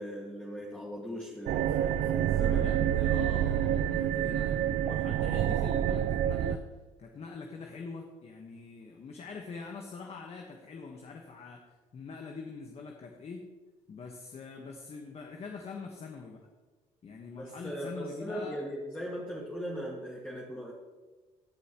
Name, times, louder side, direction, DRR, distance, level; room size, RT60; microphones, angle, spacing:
voice 1, 0.0-2.7 17.4-20.7, equal, 5° left, -4 dB, 2.0 m, -39 dB
sound 1, 1.5-6.6, right 11 dB, 65° right, 0.5 m, -28 dB
voice 2, 2.4-6.6 7.0-11.6 11.9-13.4 13.9-16.4 17.0-18.6, left 4 dB, 40° left, 2 dB, 1.4 m, -43 dB
16.5 x 8.2 x 3.1 m, 1.2 s
supercardioid pair, 85°, 16 cm